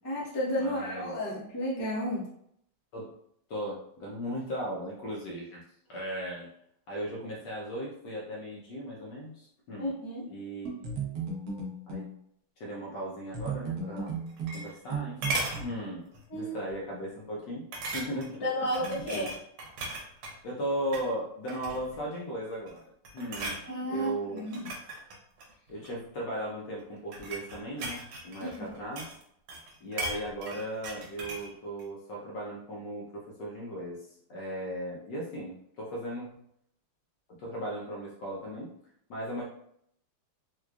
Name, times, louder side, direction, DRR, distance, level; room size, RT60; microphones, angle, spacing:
voice 1, 0.0-2.3 9.8-10.3 16.3-16.5 18.4-19.3 23.7-24.7 28.4-28.8, equal, 20° left, -7 dB, 0.6 m, -32 dB
voice 2, 0.6-1.1 2.9-3.1 3.5-5.6 5.9-6.5 6.9-9.9 10.3-10.9 11.9-12.1 12.6-14.1 14.5-17.7 17.9-18.5 18.8-19.3 20.4-22.8 23.1-23.6 23.9-24.4 25.7-29.2 29.8-36.3 37.4-38.7 39.1-39.4, right 1 dB, 65° left, -4 dB, 1.2 m, -37 dB
sound 1, 10.6-12.1 13.3-15.6, right 5 dB, 65° right, 0.9 m, -35 dB
sound 2, 14.1-14.9 15.2-15.6 16.1-16.4 16.7-16.8 17.7-18.4 18.7-20.4 20.8-21.1 21.5-22.0 22.5-22.8 23.0-23.6 24.4-26.0 26.8-29.2 29.5-31.5 31.8-31.9, right 2 dB, 90° right, 1.6 m, -37 dB
4.5 x 2.3 x 2.4 m, 0.70 s
omnidirectional pair, 2.4 m